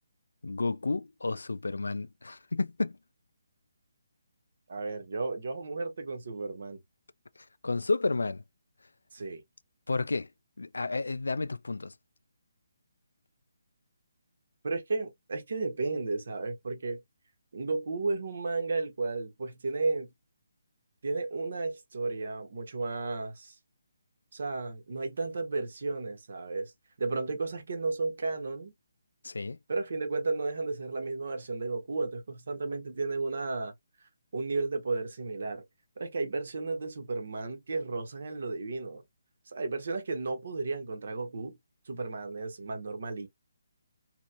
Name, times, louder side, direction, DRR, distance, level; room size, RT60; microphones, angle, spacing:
voice 1, 0.4-3.0 7.6-8.4 9.9-10.3 10.6-11.9 29.2-29.6, left 3 dB, 70° left, 0.4 m, -31 dB
voice 2, 4.7-6.8 9.1-9.4 14.6-17.0 17.5-20.1 21.0-23.6 24.3-26.7 27.0-28.7 29.7-33.7 34.3-35.6 36.0-39.0 39.5-41.6 41.9-43.3, right 3 dB, 55° right, 1.0 m, -33 dB
3.0 x 2.9 x 2.4 m
figure-of-eight pair, 145°, 0 cm